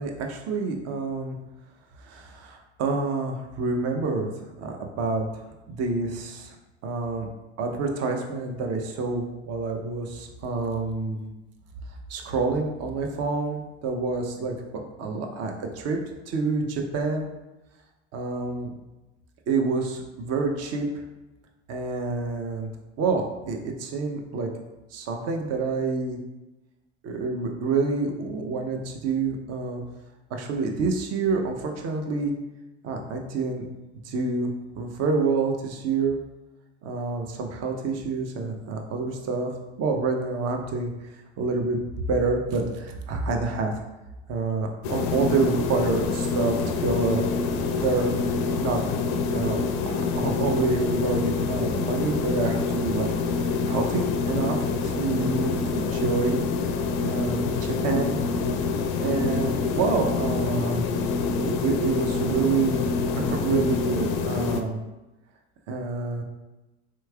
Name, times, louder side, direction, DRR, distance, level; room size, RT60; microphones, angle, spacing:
voice 1, 0.0-1.4 2.1-4.3 4.6-5.3 5.7-6.5 6.8-7.3 7.6-11.3 12.1-16.0 16.3-17.3 18.1-18.7 19.5-20.9 21.7-22.7 23.0-24.5 24.9-26.2 27.0-29.8 30.3-32.3 32.8-33.6 34.0-34.5 34.8-36.2 36.8-39.5 39.8-40.9 41.4-41.8 42.1-43.7 44.3-47.3 47.8-48.1 48.6-48.8 49.3-49.6 49.8-53.1 53.3-54.6 54.8-56.4 57.0-58.2 59.0-60.8 61.4-62.8 63.2-64.8 65.7-66.2, right 4 dB, 50° right, 3 dB, 0.7 m, -27 dB
sound 1, 44.8-64.6, left 4 dB, 60° left, 0.5 m, -26 dB
3.6 x 3.0 x 2.3 m, 1.0 s
hypercardioid pair, 75°, 34 cm